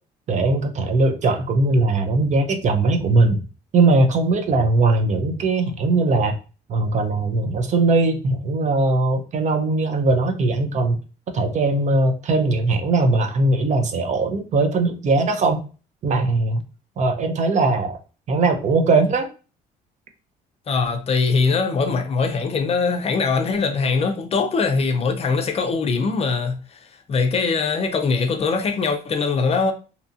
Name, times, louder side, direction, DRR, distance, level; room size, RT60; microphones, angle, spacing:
voice 1, 0.3-3.4 3.7-6.4 6.7-11.0 11.3-15.6 16.0-16.6 17.0-18.0 18.3-19.3, right 3 dB, 45° right, 0.5 m, -20 dB
voice 2, 20.7-29.7, left 4 dB, 35° left, 0.5 m, -22 dB
2.7 x 2.3 x 2.6 m
cardioid pair, 110°, 17 cm